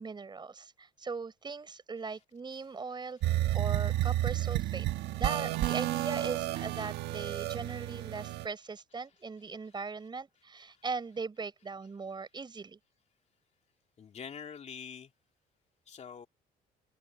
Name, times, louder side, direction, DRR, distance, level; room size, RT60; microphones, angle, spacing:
voice 1, 0.0-4.9 5.1-12.8, right 4 dB, 25° right, 5.1 m, -39 dB
sound 1, 3.2-8.5, right 15 dB, 80° right, 1.5 m, -31 dB
voice 2, 3.4-3.9 4.3-5.5 5.9-6.0 6.7-6.9 7.3-7.5 8.6-9.2 14.0-15.1 15.9-16.3, left 7 dB, 40° left, 3.1 m, -49 dB
open air
cardioid pair, 110°, 17 cm